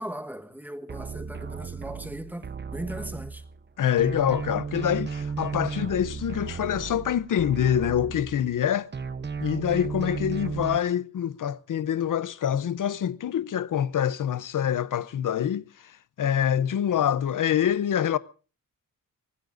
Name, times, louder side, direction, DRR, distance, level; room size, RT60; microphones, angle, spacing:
voice 1, 0.0-3.4, right 1 dB, 5° right, 1.2 m, -38 dB
sound 1, 0.9-3.7 4.0-8.6 8.9-10.8, right 5 dB, 30° right, 0.8 m, -35 dB
voice 2, 3.8-8.9 9.4-18.2, left 9 dB, 70° left, 0.7 m, -26 dB
23.5 x 19.5 x 2.6 m
wide cardioid pair, 170°, 33 cm